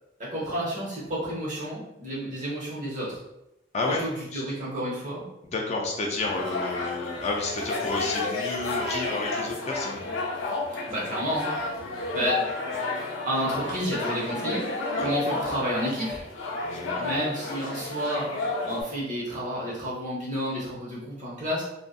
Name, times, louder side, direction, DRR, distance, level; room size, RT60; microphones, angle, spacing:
voice 1, 0.2-3.2 3.9-5.2 10.9-11.5 12.1-12.4 13.2-14.6 15.0-16.2 17.0-18.3 18.6-21.6, equal, 40° right, -7 dB, 1.0 m, -30 dB
voice 2, 3.7-4.1 4.3-4.4 5.4-10.0 14.9-15.1 16.6-17.2, left 3 dB, 35° left, 0 dB, 0.4 m, -31 dB
sound 1, 6.2-18.8, left 3 dB, 85° left, 0.5 m, -31 dB
2.5 x 2.4 x 2.2 m, 0.86 s
head